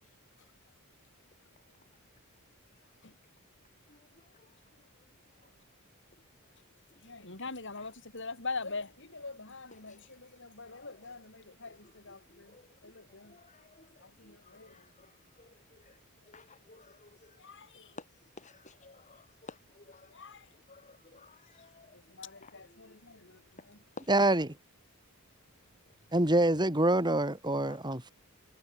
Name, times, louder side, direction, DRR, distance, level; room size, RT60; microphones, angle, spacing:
voice 1, 7.0-12.5 12.8-13.3 14.0-14.8 17.4-17.9 20.1-20.5 21.9-23.8, left 3 dB, 55° left, 6.0 m, -43 dB
voice 2, 13.3-13.7 14.3-15.1 15.4-15.5 15.9-16.0 16.3-17.3 18.0-18.1 18.4-20.1 20.7-21.9 22.4-22.5 24.0-24.1 27.7-27.8, left 3 dB, 35° left, 3.7 m, -52 dB
voice 3, 24.1-24.5 26.1-28.1, right 1 dB, 20° right, 4.0 m, -26 dB
head